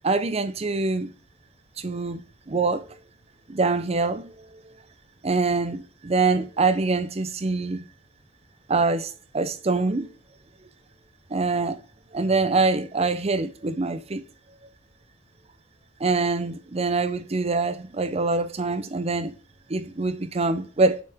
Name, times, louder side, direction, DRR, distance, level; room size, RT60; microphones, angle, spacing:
voice 1, 0.0-1.1 1.8-2.2 2.5-3.0 3.5-4.5 5.2-7.8 8.7-10.1 11.3-11.8 12.1-14.2 16.0-19.3 19.7-21.0, right 3 dB, 35° right, 0.6 m, -24 dB
6.8 x 5.8 x 3.5 m
head